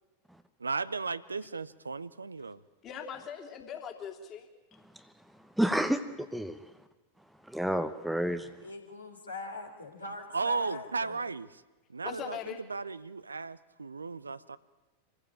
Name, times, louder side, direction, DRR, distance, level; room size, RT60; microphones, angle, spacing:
voice 1, 0.6-2.6 10.3-11.5 11.9-14.6, right 4 dB, 75° right, 16 dB, 0.7 m, -35 dB
voice 2, 2.8-4.5 12.0-12.6, left 7 dB, 30° left, 4 dB, 3.0 m, -40 dB
voice 3, 5.6-6.6 7.5-8.5, equal, ahead, 10 dB, 1.0 m, -29 dB
voice 4, 8.4-11.2, left 3 dB, 80° left, 2 dB, 3.7 m, -42 dB
25.5 x 15.5 x 8.8 m, 1.2 s
figure-of-eight pair, 90°, 0 cm